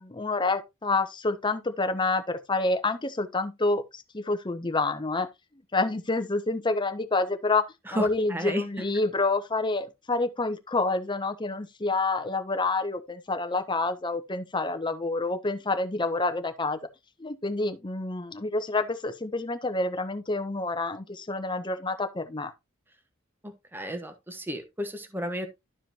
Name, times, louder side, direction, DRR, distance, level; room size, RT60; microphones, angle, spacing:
voice 1, 0.0-5.3 5.7-16.8 17.2-22.5, left 3 dB, 20° left, 0.9 m, -28 dB
voice 2, 7.9-8.6 23.7-25.5, equal, 10° right, 1.1 m, -32 dB
12.0 x 5.0 x 2.9 m
head